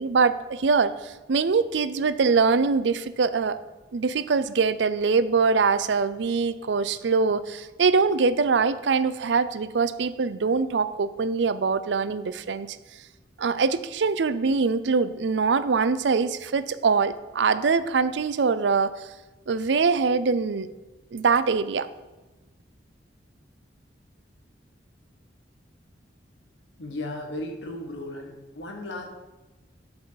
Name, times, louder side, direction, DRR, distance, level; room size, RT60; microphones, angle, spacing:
voice 1, 0.0-3.6 3.9-12.8 13.4-18.9 19.5-20.7 21.1-21.9, right 4 dB, 75° right, 14 dB, 0.5 m, -23 dB
voice 2, 26.8-29.1, left 1 dB, 90° left, 2 dB, 1.6 m, -35 dB
12.0 x 5.7 x 4.0 m, 1.1 s
head